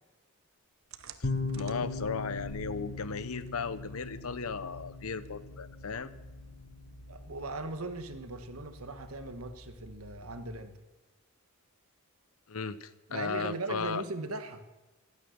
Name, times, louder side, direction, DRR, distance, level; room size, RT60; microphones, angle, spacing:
sound 1, 0.9-8.1, right 4 dB, 70° right, 0.9 m, -53 dB
sound 2, 1.2-10.6, left 3 dB, 55° left, 1.3 m, -41 dB
voice 1, 1.5-6.1 12.5-14.0, left 5 dB, 85° left, 15 dB, 0.8 m, -36 dB
voice 2, 7.1-10.8 13.1-14.6, right 2 dB, 85° right, 8 dB, 1.5 m, -39 dB
15.5 x 12.5 x 6.5 m, 1.1 s
head